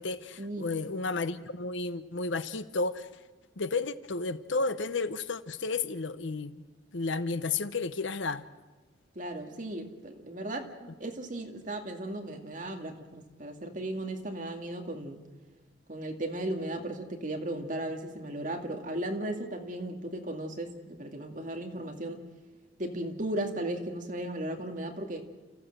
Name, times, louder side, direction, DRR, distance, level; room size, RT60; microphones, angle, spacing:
voice 1, 0.0-3.1 3.6-6.6 6.9-8.4, left 3 dB, 75° left, 0.9 m, -32 dB
voice 2, 9.2-15.2 15.9-22.2 22.8-25.2, right 1 dB, 40° right, 2.3 m, -36 dB
30.0 x 14.5 x 7.8 m
head